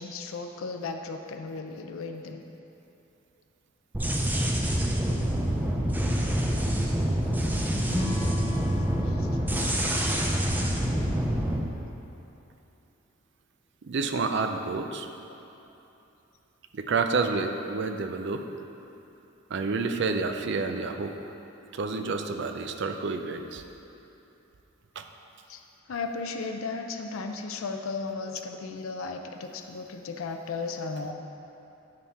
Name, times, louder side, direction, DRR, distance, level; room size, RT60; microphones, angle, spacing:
voice 1, 0.0-2.4 4.2-4.4 9.2-9.3 25.5-25.6 25.9-31.1, left 4 dB, 80° left, 4 dB, 0.5 m, -35 dB
sound 1, 3.9-11.6, equal, 10° right, 0.5 m, -26 dB
Acoustic guitar / Strum, 7.9-11.1, left 1 dB, 60° left, 1.7 m, -38 dB
voice 2, 13.8-15.1 16.7-18.5 19.5-21.3 21.7-23.6 25.0-25.1, right 4 dB, 60° right, 6 dB, 0.5 m, -29 dB
9.7 x 3.6 x 5.6 m, 2.9 s
head